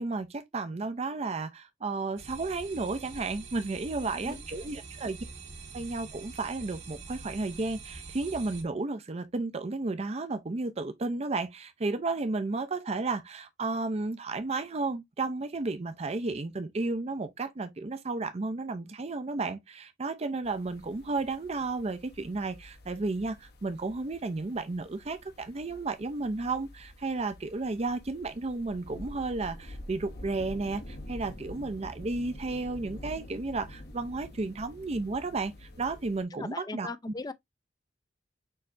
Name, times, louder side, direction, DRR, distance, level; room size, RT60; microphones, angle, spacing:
voice 1, 0.0-5.2 5.7-36.9, right 3 dB, 35° right, 0.5 m, -33 dB
sound 1, 2.2-8.6, right 4 dB, 80° right, 1.4 m, -45 dB
sound 2, 20.4-36.2, left 1 dB, 60° left, 1.3 m, -47 dB
voice 2, 36.3-37.3, left 3 dB, 20° left, 0.5 m, -38 dB
6.5 x 3.1 x 2.5 m
head